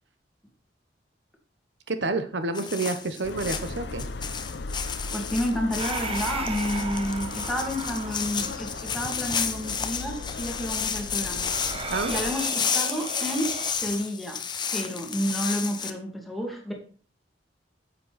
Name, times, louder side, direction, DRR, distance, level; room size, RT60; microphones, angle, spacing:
voice 1, 1.9-4.1 11.9-12.1, right 3 dB, 75° right, 9 dB, 1.0 m, -29 dB
sound 1, 2.5-15.9, left 6 dB, 25° left, 0.8 m, -32 dB
sound 2, 3.2-12.3, left 3 dB, 65° left, 0.6 m, -37 dB
voice 2, 5.1-11.6 12.1-14.4 14.7-16.7, equal, ahead, 0 dB, 2.3 m, -30 dB
sound 3, 5.8-13.7, right 3 dB, 30° right, 1.0 m, -37 dB
9.6 x 7.5 x 4.1 m, 0.42 s
head